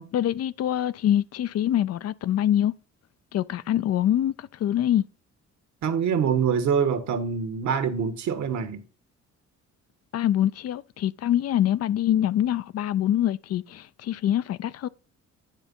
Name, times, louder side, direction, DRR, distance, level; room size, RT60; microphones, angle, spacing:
voice 1, 0.1-2.7 3.3-5.0 10.1-14.9, left 11 dB, 55° left, 0.5 m, -24 dB
voice 2, 5.8-8.8, right 7 dB, 70° right, 1.4 m, -25 dB
9.8 x 3.5 x 5.3 m
cardioid pair, 90°, 30 cm